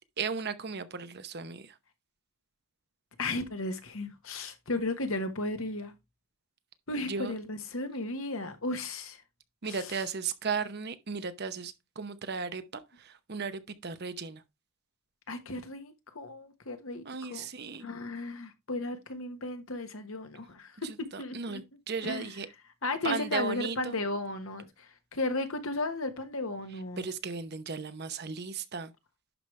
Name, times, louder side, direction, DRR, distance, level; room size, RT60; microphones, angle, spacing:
voice 1, 0.2-1.7 7.1-7.3 9.6-14.4 17.0-17.9 21.1-22.5 23.0-24.0 27.0-28.9, right 5 dB, 50° right, 0.8 m, -35 dB
voice 2, 3.2-5.9 6.9-9.2 9.6-10.0 15.3-17.5 17.8-21.6 22.0-22.3 22.8-27.1, left 2 dB, 70° left, 1.3 m, -35 dB
11.0 x 5.0 x 3.2 m
head